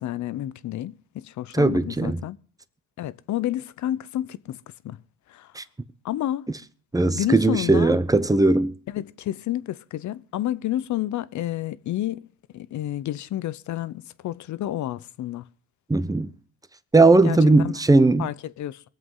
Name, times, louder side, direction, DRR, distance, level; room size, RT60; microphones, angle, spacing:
voice 1, 0.0-2.4 3.0-4.6 4.8-5.0 5.3-5.5 6.0-6.5 7.1-8.0 8.9-15.5 17.2-17.7 18.2-18.8, left 13 dB, 70° left, 0.8 m, -30 dB
voice 2, 1.5-2.2 5.5-5.6 6.9-8.7 15.9-16.3 16.9-18.3, right 2 dB, 10° right, 0.9 m, -18 dB
22.5 x 7.8 x 5.6 m
cardioid pair, 90°, 30 cm